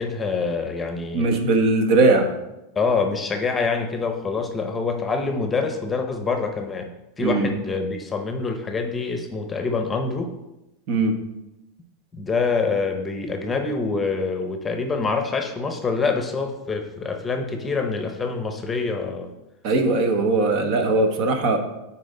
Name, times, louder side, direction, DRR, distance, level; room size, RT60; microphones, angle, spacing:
voice 1, 0.0-1.3 2.7-10.3 12.1-19.3, left 4 dB, 15° left, 5 dB, 0.8 m, -26 dB
voice 2, 1.1-2.3 7.2-7.5 10.9-11.1 19.6-21.6, right 3 dB, 55° right, 5 dB, 1.2 m, -19 dB
9.5 x 4.3 x 3.9 m, 0.94 s
supercardioid pair, 135°, 0 cm